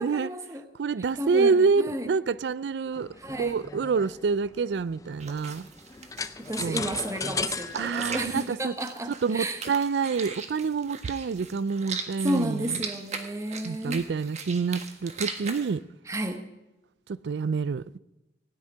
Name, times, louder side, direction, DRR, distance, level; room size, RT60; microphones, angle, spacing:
voice 1, 0.0-0.6 1.2-2.1 3.2-3.6 6.4-9.6 12.2-14.0 16.1-16.4, right 1 dB, 15° right, 0.9 m, -32 dB
voice 2, 0.8-3.1 3.4-5.7 6.6-6.9 7.7-8.7 9.1-12.8 13.6-15.8 17.1-18.0, right 5 dB, 75° right, 0.4 m, -27 dB
sound 1, 2.9-8.4, left 4 dB, 20° left, 0.5 m, -36 dB
sound 2, 5.2-15.7, right 5 dB, 40° right, 1.3 m, -40 dB
16.5 x 6.5 x 9.6 m
head